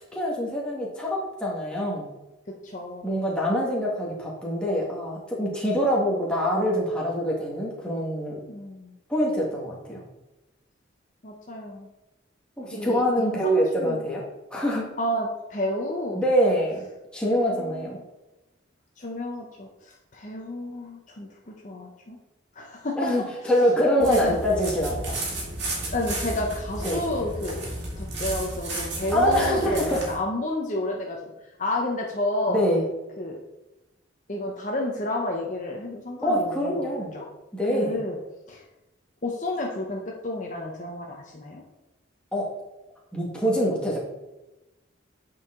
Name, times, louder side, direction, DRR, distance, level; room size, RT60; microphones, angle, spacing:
voice 1, 0.1-2.1 3.0-8.3 9.1-10.0 12.6-14.2 14.5-14.9 16.1-16.9 17.1-18.0 23.0-25.2 26.8-27.0 29.1-30.0 32.5-32.8 36.2-37.1 37.5-38.0 42.3-42.5 43.1-44.0, equal, 5° left, -5 dB, 1.5 m, -25 dB
voice 2, 2.5-3.2 8.5-8.9 11.2-11.9 12.7-14.0 15.0-16.2 17.4-18.0 19.0-22.2 22.5-23.0 24.1-24.4 25.9-27.7 28.0-31.3 31.6-32.6 33.2-33.4 34.3-36.7 37.1-37.3 37.7-38.2 38.5-38.6 39.2-41.6, left 1 dB, 40° left, 0 dB, 0.7 m, -31 dB
sound 1, 24.0-30.1, right 1 dB, 60° right, 2.2 m, -33 dB
8.5 x 4.7 x 3.7 m, 1.0 s
head